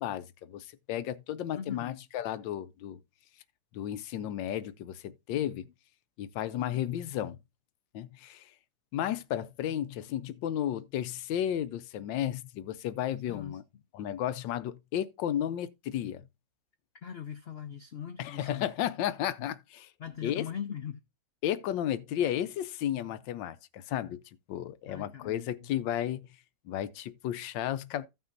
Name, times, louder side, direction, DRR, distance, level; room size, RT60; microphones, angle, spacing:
voice 1, 0.0-3.0 3.7-5.7 6.2-7.4 7.9-8.5 8.9-13.6 13.9-16.3 18.2-19.9 20.2-20.5 21.4-24.2 24.5-26.3 26.7-28.1, left 11 dB, 90° left, 1.4 m, -33 dB
voice 2, 1.5-2.0 6.6-6.8 13.3-13.6 17.0-18.7 19.4-19.5 20.0-21.0 24.9-25.7, left 8 dB, 75° left, 0.5 m, -41 dB
15.0 x 5.8 x 2.5 m
omnidirectional pair, 1.9 m